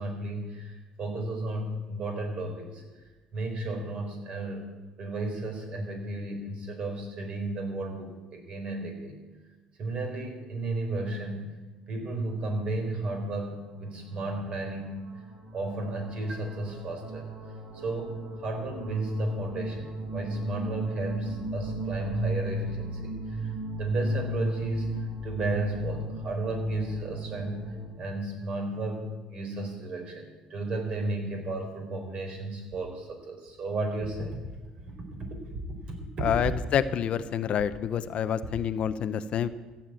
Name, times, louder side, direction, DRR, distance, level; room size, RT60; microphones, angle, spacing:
voice 1, 0.0-2.8 3.3-4.7 5.0-9.2 9.8-11.5 11.9-15.0 15.5-17.3 17.7-18.1 18.4-23.5 23.8-34.4 35.9-36.3, right 2 dB, 50° right, 3 dB, 4.0 m, -33 dB
sound 1, 14.6-14.7 15.0-27.9, right 1 dB, 90° right, 5.3 m, -35 dB
voice 2, 36.2-39.5, left 9 dB, 55° left, 12 dB, 0.6 m, -28 dB
14.5 x 7.3 x 9.0 m, 1.2 s
cardioid pair, 110°, 2 cm